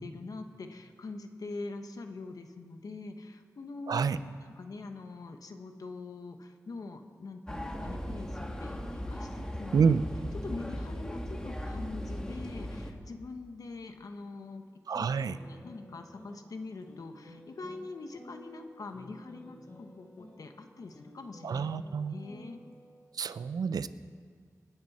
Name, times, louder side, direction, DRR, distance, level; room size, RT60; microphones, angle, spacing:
voice 1, 0.0-4.1 4.4-10.0 10.4-14.6 14.9-15.1 15.4-21.7 22.0-22.6, left 3 dB, 70° left, 6 dB, 1.2 m, -43 dB
voice 2, 3.9-4.2 9.7-10.0 14.9-15.4 21.4-22.1 23.1-23.9, right 6 dB, 90° right, 14 dB, 0.5 m, -28 dB
sound 1, 7.5-12.9, equal, 10° left, 1.5 m, -38 dB
sound 2, 14.9-23.0, left 1 dB, 50° left, 3.7 m, -53 dB
26.5 x 9.7 x 4.3 m, 2.1 s
wide cardioid pair, 95°, 6 cm